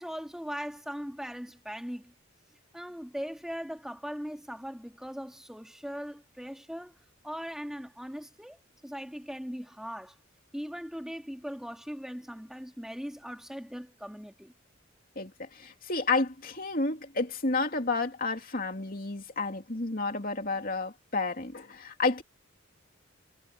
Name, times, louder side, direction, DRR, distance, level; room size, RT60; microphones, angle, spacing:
voice 1, 0.0-2.1 2.7-7.0 7.2-10.2 10.5-14.5, equal, ahead, 2.1 m, -39 dB
voice 2, 15.2-22.2, left 3 dB, 45° left, 2.8 m, -31 dB
head